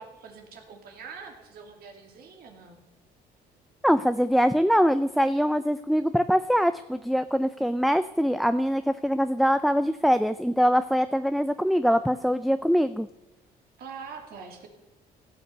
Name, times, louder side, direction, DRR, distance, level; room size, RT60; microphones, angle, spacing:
voice 1, 0.0-2.8 13.8-14.7, right 5 dB, 65° right, 3 dB, 2.6 m, -44 dB
voice 2, 3.8-13.1, equal, ahead, 12 dB, 0.4 m, -23 dB
16.0 x 6.8 x 6.7 m, 1.0 s
cardioid pair, 110°, 17 cm